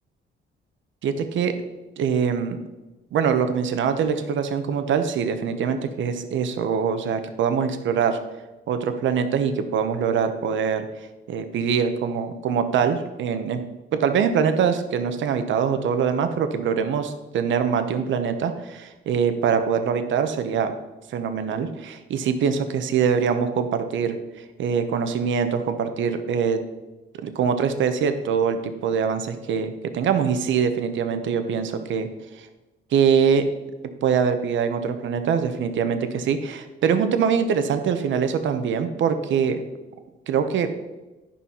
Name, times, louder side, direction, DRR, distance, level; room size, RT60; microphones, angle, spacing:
voice 1, 1.0-1.5 2.0-2.6 3.1-8.2 8.7-10.9 11.3-13.6 13.9-20.7 21.1-24.2 24.6-26.6 27.2-32.1 32.4-32.5 32.9-33.5 34.0-39.6 40.3-40.7, right 7 dB, 70° right, 9 dB, 0.9 m, -23 dB
10.5 x 5.5 x 5.6 m, 1.1 s
cardioid pair, 90°, 20 cm